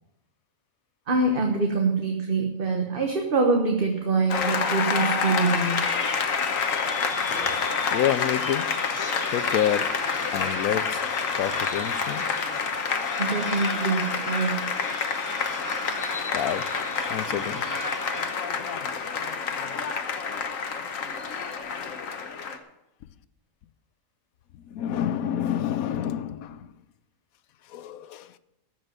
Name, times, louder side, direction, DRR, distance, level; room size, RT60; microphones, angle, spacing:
voice 1, 1.1-5.9 13.2-14.6, right 3 dB, 40° right, 1.3 m, -24 dB
Applause, 4.3-22.6, left 5 dB, 70° left, 1.5 m, -28 dB
sound 1, 5.0-18.3, left 2 dB, 15° left, 1.0 m, -36 dB
voice 2, 7.9-8.8 9.3-11.0 11.3-12.3 16.3-16.8 17.1-17.7 21.8-22.0 24.5-26.7 27.7-28.4, left 10 dB, 85° left, 1.1 m, -28 dB
14.5 x 6.1 x 8.9 m
omnidirectional pair, 1.4 m